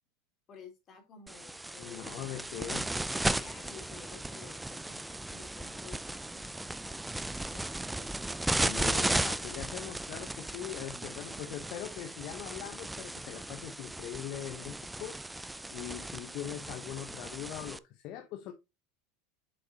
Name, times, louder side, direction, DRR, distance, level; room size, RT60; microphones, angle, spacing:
voice 1, 0.5-2.3 3.0-8.1 10.9-11.4, left 6 dB, 40° left, 3.4 m, -54 dB
sound 1, 1.3-17.8, right 1 dB, 5° right, 0.4 m, -36 dB
voice 2, 1.8-2.9 8.6-18.5, left 12 dB, 60° left, 1.0 m, -42 dB
7.5 x 6.7 x 2.9 m
hypercardioid pair, 90°, 0 cm